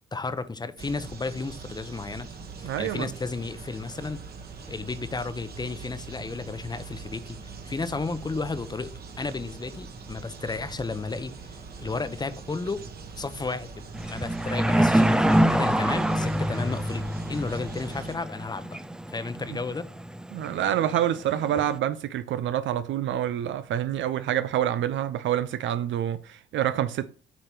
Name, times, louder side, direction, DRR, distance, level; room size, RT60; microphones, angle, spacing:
voice 1, 0.1-2.3 2.6-4.2 4.7-7.4 7.6-8.9 9.2-12.8 13.1-17.0 17.3-18.8 19.1-19.8, left 3 dB, 20° left, 0.8 m, -33 dB
sound 1, 0.8-18.2, right 4 dB, 50° right, 1.6 m, -42 dB
voice 2, 2.6-3.1 20.3-27.1, right 11 dB, 70° right, 0.5 m, -27 dB
sound 2, 13.9-21.8, right 1 dB, 5° right, 0.4 m, -26 dB
8.3 x 3.3 x 5.9 m
cardioid pair, 90°, 20 cm